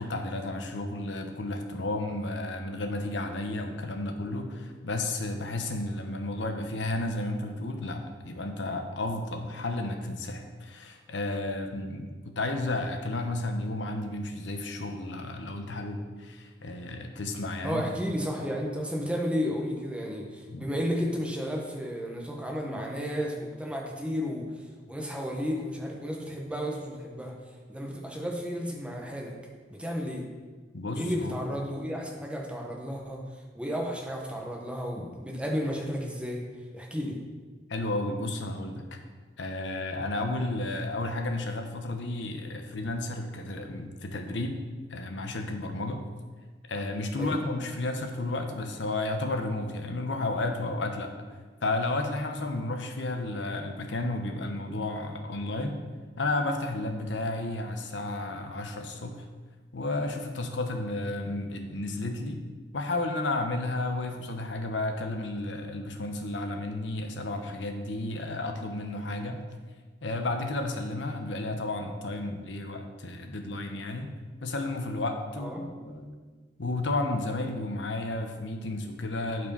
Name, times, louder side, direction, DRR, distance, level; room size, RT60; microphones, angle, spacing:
voice 1, 0.0-17.9 20.5-20.7 30.7-31.4 37.7-39.0 39.4-44.6 44.9-46.0 46.7-51.1 51.6-55.8 56.2-59.3 59.7-62.4 62.7-69.4 70.0-74.1 74.4-76.1 76.6-79.5, left 2 dB, 75° left, 4 dB, 0.9 m, -32 dB
voice 2, 17.6-24.4 24.9-27.3 27.7-29.3 29.7-30.2 31.0-33.2 33.5-36.4 36.7-37.2 47.2-47.4 75.4-75.6, equal, 5° right, -1 dB, 1.2 m, -32 dB
8.6 x 4.7 x 5.4 m, 1.4 s
head